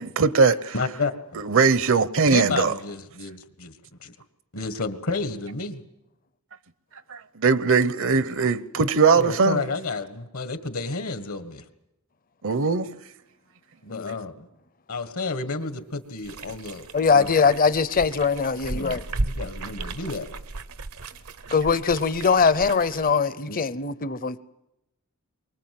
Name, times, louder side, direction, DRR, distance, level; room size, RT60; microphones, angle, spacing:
voice 1, 0.0-0.7 1.4-2.7 7.1-9.6 12.4-12.9, right 5 dB, 60° right, 0.8 m, -20 dB
voice 2, 0.7-1.4 2.3-4.1 4.5-5.8 9.1-11.6 13.8-14.5 14.9-17.4 18.7-20.3 23.5-23.6, left 3 dB, 70° left, 1.6 m, -31 dB
sound 1, 16.2-23.1, right 2 dB, 80° right, 1.0 m, -35 dB
voice 3, 16.9-19.0 21.5-24.4, left 5 dB, 40° left, 0.7 m, -21 dB
23.5 x 20.5 x 7.8 m
head